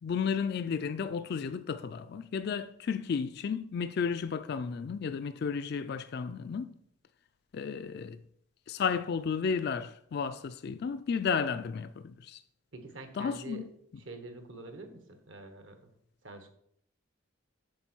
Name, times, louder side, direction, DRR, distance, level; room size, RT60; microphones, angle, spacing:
voice 1, 0.0-6.7 7.5-8.2 8.7-12.4 13.2-13.6, left 6 dB, 55° left, 0.3 m, -33 dB
voice 2, 12.7-13.6 14.0-15.9 16.2-16.5, right 2 dB, 70° right, 1.3 m, -46 dB
8.3 x 6.2 x 4.4 m
head